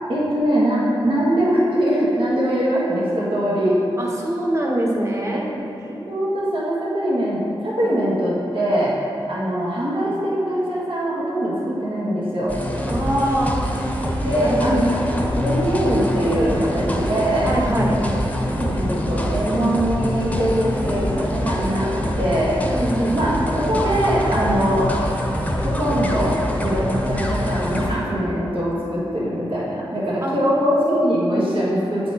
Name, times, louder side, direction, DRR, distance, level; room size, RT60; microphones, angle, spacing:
voice 1, 0.1-3.8 6.1-8.9 9.3-12.5 14.2-14.9 15.3-18.0 18.6-22.6 23.1-23.3 23.6-24.9 25.6-32.1, equal, 65° right, -7 dB, 1.6 m, -22 dB
voice 2, 4.0-5.5 12.9-13.6 14.4-14.8 17.5-17.9 22.7-23.1 30.2-30.3, right 1 dB, 30° right, -2 dB, 1.4 m, -23 dB
sound 1, 12.5-27.9, equal, 15° left, 1.0 m, -24 dB
8.3 x 4.2 x 4.3 m, 2.7 s
cardioid pair, 50°, 10 cm